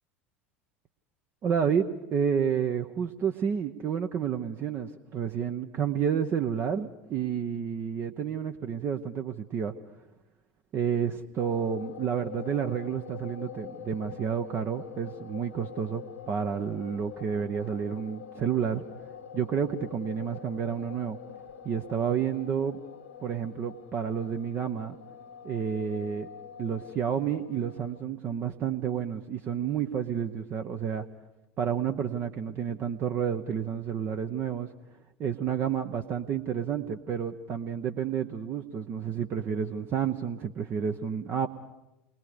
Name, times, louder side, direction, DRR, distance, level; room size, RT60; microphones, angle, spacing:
voice 1, 1.4-9.7 10.7-18.8 19.3-21.2 21.6-22.8 23.2-25.0 25.4-26.3 26.6-31.0 31.6-34.7 35.2-41.5, right 7 dB, 35° right, 7 dB, 0.9 m, -30 dB
sound 1, 11.4-28.0, left 8 dB, 65° left, 1.1 m, -45 dB
28.5 x 21.0 x 5.1 m, 0.95 s
figure-of-eight pair, 75°, 7 cm